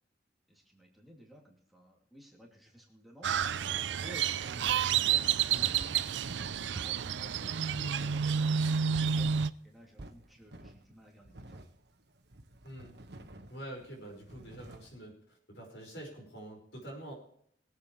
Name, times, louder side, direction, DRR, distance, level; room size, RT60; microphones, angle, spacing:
voice 1, 0.5-3.7 4.0-11.7, equal, ahead, -2 dB, 2.7 m, -55 dB
Crow, 3.2-9.5, right 8 dB, 90° right, 0.5 m, -30 dB
sound 1, 4.7-5.0 5.8-6.1 6.7-7.2 7.7-8.1 8.9-9.3 10.0-10.3 10.8-10.9 11.2-11.3, right 2 dB, 30° right, 0.5 m, -49 dB
sound 2, 5.5-15.0, right 1 dB, 65° right, 1.4 m, -52 dB
voice 2, 13.5-15.1 15.5-17.1, right 1 dB, 75° left, 1 dB, 5.4 m, -46 dB
22.0 x 8.5 x 3.2 m, 0.65 s
head